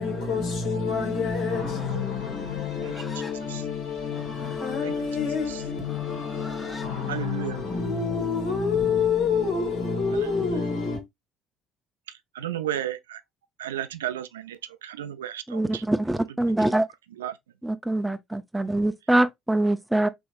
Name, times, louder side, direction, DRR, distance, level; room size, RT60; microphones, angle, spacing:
voice 1, 0.0-11.0, left 5 dB, 65° left, 1.6 m, -28 dB
Livestock farm animals working animals, 1.3-6.9, left 3 dB, 25° left, 0.7 m, -45 dB
voice 2, 7.1-7.6 12.3-13.2 13.6-15.8 16.6-16.7 17.2-17.4, right 11 dB, 85° right, 0.3 m, -33 dB
voice 3, 15.5-16.9 17.6-20.1, right 1 dB, 10° right, 0.4 m, -24 dB
3.5 x 3.0 x 2.3 m
hypercardioid pair, 55°, 0 cm